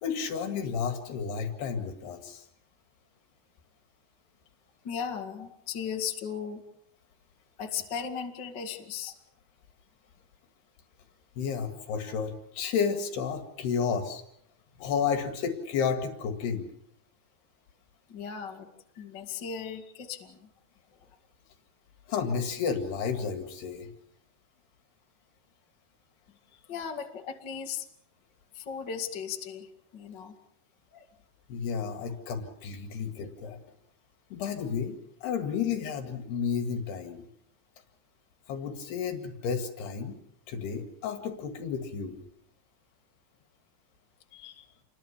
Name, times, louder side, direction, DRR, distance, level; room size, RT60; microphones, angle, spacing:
voice 1, 0.0-2.4 11.4-14.2 14.8-16.7 22.1-23.9 31.5-33.6 34.3-37.2 38.5-40.1 40.5-42.2, left 6 dB, 75° left, 6 dB, 4.0 m, -32 dB
voice 2, 4.8-6.6 7.6-9.1 18.1-18.7 19.0-20.4 26.5-27.9 28.5-29.7 29.9-30.3 30.9-31.1 44.3-44.7, left 7 dB, 35° left, 3 dB, 1.9 m, -37 dB
28.0 x 22.0 x 7.2 m, 0.76 s
omnidirectional pair, 4.7 m